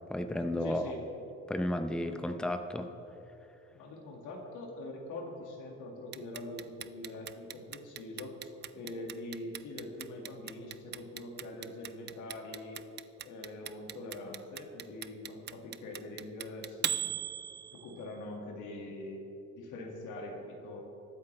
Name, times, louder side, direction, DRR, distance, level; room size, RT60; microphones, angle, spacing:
voice 1, 0.1-0.9 1.5-2.9, left 1 dB, 5° left, 7 dB, 0.7 m, -33 dB
voice 2, 0.6-1.0 3.7-8.4 8.7-12.8 13.2-17.2 17.7-19.2 19.5-20.8, left 2 dB, 90° left, 0 dB, 2.1 m, -43 dB
Clock, 6.1-18.1, right 10 dB, 35° right, 0.4 m, -38 dB
21.0 x 8.4 x 3.3 m, 2.9 s
cardioid pair, 90°, 30 cm